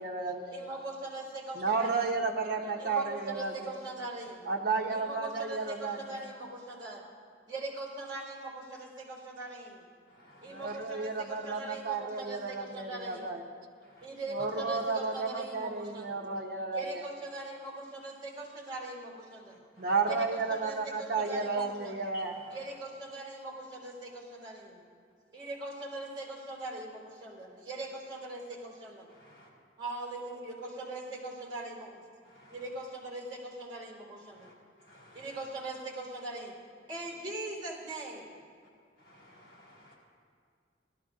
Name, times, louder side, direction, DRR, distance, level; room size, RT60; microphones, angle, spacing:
voice 1, 0.0-0.6 1.5-3.7 4.4-6.2 10.5-13.4 14.3-17.0 19.8-22.3, right 4 dB, 55° right, 0 dB, 1.0 m, -32 dB
voice 2, 0.5-2.2 2.8-4.5 4.9-7.0 7.5-9.9 10.4-13.4 14.0-16.2 16.7-19.6 20.1-22.1 22.5-24.8 25.3-29.0 29.8-32.0 32.5-34.5 35.1-36.5 36.9-38.4, right 2 dB, 25° right, -3 dB, 3.6 m, -41 dB
voice 3, 10.1-10.6 22.1-22.3 29.3-29.5 32.3-32.5 34.4-34.5 34.8-35.3 39.0-40.0, left 1 dB, 55° left, -3 dB, 4.3 m, -55 dB
17.5 x 12.5 x 3.8 m, 2.2 s
head